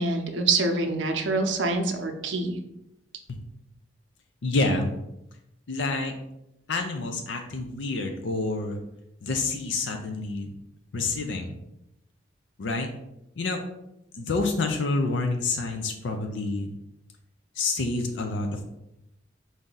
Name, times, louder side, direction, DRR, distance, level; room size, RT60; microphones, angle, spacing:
voice 1, 0.0-2.6, right 3 dB, 80° right, 5 dB, 0.6 m, -25 dB
voice 2, 4.4-4.9 5.7-6.2 6.7-8.8 9.2-10.5 10.9-11.6 12.6-12.9 13.4-13.6 14.1-16.7 17.6-18.7, left 3 dB, 80° left, 4 dB, 0.5 m, -28 dB
4.6 x 2.7 x 3.8 m, 0.85 s
head